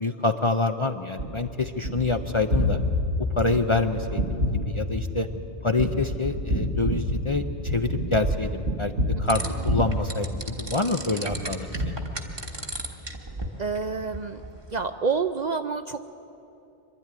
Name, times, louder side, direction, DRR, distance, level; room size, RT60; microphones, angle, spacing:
voice 1, 0.0-2.8 3.4-5.3 5.6-8.9 9.2-12.0, left 3 dB, 35° left, 7 dB, 0.6 m, -27 dB
Gunshot gunfire, 1.2-10.9 11.3-12.7, equal, 75° right, 1.8 m, -28 dB
sound 1, 9.3-14.9, right 1 dB, 25° right, 1.3 m, -37 dB
voice 2, 13.6-14.4 14.7-16.0, right 5 dB, 50° right, 8 dB, 0.6 m, -28 dB
24.5 x 12.0 x 9.6 m, 2.8 s
omnidirectional pair, 1.2 m